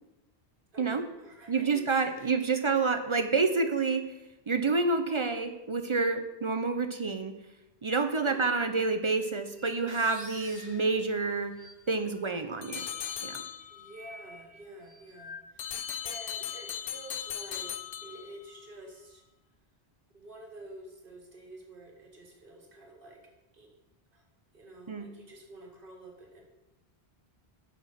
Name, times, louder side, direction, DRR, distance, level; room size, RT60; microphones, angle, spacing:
voice 1, 0.7-1.7 2.1-2.3 8.2-8.5 13.7-19.2 20.1-23.2 23.5-23.8 24.1-24.2 24.5-26.4, right 1 dB, 60° right, 1 dB, 1.6 m, -49 dB
voice 2, 1.5-4.1 4.5-7.3 7.8-11.5 11.9-12.8 13.2-13.4 24.9-25.1, right 4 dB, 45° right, 8 dB, 0.4 m, -28 dB
sound 1, 9.5-10.2 10.6-10.7 10.9-12.2 12.5-16.4, left 1 dB, 5° right, 2.6 m, -52 dB
sound 2, 9.9-11.8, equal, 50° left, 2.5 m, -48 dB
sound 3, 12.6-14.0 15.6-18.6, left 9 dB, 65° left, 0.7 m, -38 dB
7.2 x 6.0 x 5.5 m, 0.98 s
omnidirectional pair, 1.0 m